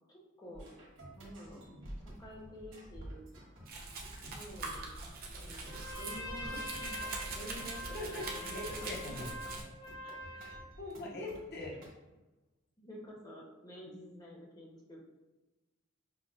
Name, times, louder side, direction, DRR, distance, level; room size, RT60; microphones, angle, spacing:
voice 1, 0.1-0.7 1.2-1.6 2.0-3.2 4.2-4.9 5.3-9.5 10.0-10.1 11.0-11.3 12.8-15.0, equal, 20° left, -2 dB, 0.7 m, -50 dB
sound 1, 0.5-11.9, equal, 70° right, 1.3 m, -52 dB
Domestic sounds home sounds, 3.7-9.6, right 3 dB, 45° right, 0.6 m, -43 dB
Trumpet, 5.6-10.7, left 1 dB, 85° left, 0.8 m, -44 dB
voice 2, 7.9-8.2 8.5-9.3 10.3-11.7, left 2 dB, 55° left, -2 dB, 0.8 m, -42 dB
6.1 x 2.1 x 2.3 m, 1.1 s
head